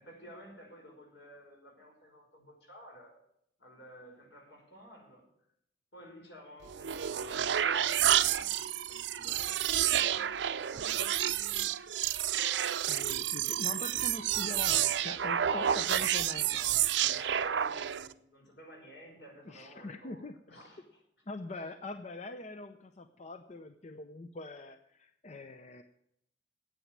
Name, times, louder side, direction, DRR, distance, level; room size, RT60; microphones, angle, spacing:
voice 1, 0.0-3.1 3.6-5.3 5.9-8.6 8.9-10.3 10.7-11.7 16.4-21.0 21.5-21.7, equal, 75° left, 0 dB, 5.3 m, -53 dB
sound 1, 6.7-18.1, right 10 dB, 85° right, 0.5 m, -30 dB
voice 2, 12.9-16.5 19.5-20.3 21.3-25.8, left 2 dB, 40° left, 8 dB, 0.6 m, -43 dB
9.2 x 8.6 x 9.4 m, 0.75 s
head